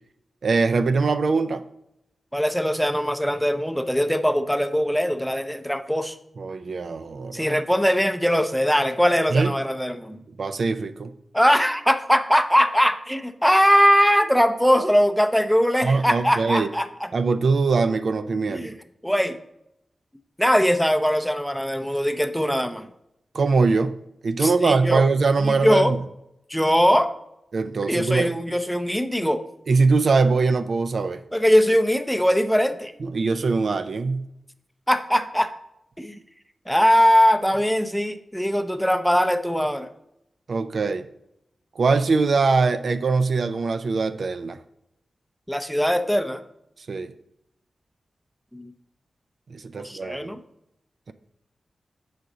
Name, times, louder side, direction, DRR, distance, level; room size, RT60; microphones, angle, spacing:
voice 1, 0.4-1.6 6.4-7.5 9.3-9.5 10.4-11.1 15.8-16.7 17.1-18.7 23.3-24.0 24.2-26.0 27.5-28.3 29.7-31.2 33.0-34.3 40.5-41.1 41.8-44.6 46.9-47.1 49.5-50.3, right 4 dB, 65° right, 9 dB, 0.3 m, -22 dB
voice 2, 2.3-6.1 7.3-10.2 11.3-17.1 18.5-18.7 19.0-19.4 20.4-22.9 24.4-25.0 25.4-25.9 26.5-27.1 27.9-29.4 31.3-32.9 34.9-35.5 36.0-36.2 36.7-39.9 45.5-46.4 48.5-48.7 49.8-50.4, equal, ahead, 9 dB, 0.5 m, -21 dB
6.9 x 4.9 x 3.8 m, 0.82 s
wide cardioid pair, 80°, 0 cm